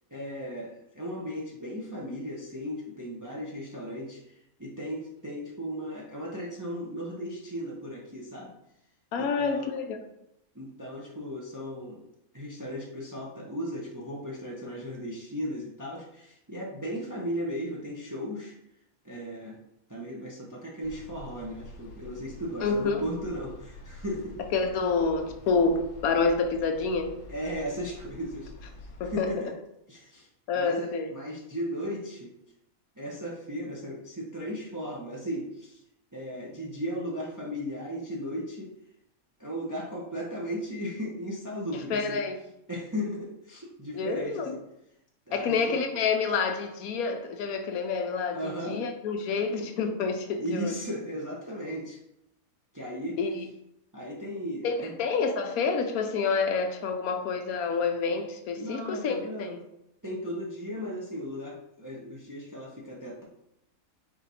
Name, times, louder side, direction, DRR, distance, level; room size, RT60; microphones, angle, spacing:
voice 1, 0.1-8.5 9.2-9.6 10.5-12.0 12.3-18.5 19.0-19.6 19.9-24.4 27.3-28.5 29.1-29.5 29.9-30.3 30.5-32.3 33.0-35.8 36.1-38.7 39.4-42.2 42.7-44.6 45.3-45.8 48.3-48.8 50.4-52.0 52.7-53.2 53.9-54.9 58.6-59.6 60.0-63.2, equal, 20° right, -3 dB, 0.5 m, -36 dB
voice 2, 9.1-10.0 22.6-23.0 24.5-27.1 29.0-29.5 30.5-31.1 41.7-42.4 43.9-44.5 45.3-50.7 53.2-53.5 54.6-59.6, left 4 dB, 85° left, 5 dB, 1.1 m, -28 dB
sound 1, 20.8-29.2, left 2 dB, 65° left, 0.9 m, -47 dB
4.8 x 2.6 x 4.1 m, 0.82 s
omnidirectional pair, 1.5 m